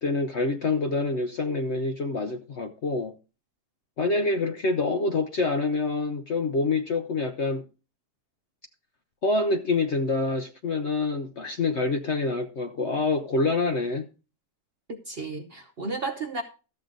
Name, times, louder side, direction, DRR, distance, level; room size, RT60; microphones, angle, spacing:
voice 1, 0.0-3.1 4.0-7.6 9.2-14.1, left 3 dB, 55° left, 0.8 m, -26 dB
voice 2, 14.9-16.4, right 3 dB, 45° right, 0.8 m, -33 dB
13.0 x 7.6 x 3.8 m
omnidirectional pair, 1.8 m